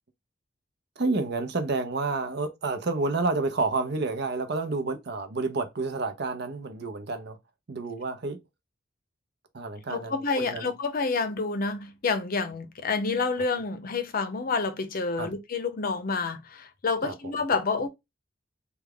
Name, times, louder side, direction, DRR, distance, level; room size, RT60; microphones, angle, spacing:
voice 1, 1.0-7.4 7.7-8.4 9.5-10.7 15.2-15.3 17.0-17.1, right 3 dB, 60° right, 0.7 m, -29 dB
voice 2, 9.9-17.9, left 4 dB, 50° left, 0.6 m, -28 dB
3.4 x 2.3 x 3.5 m
head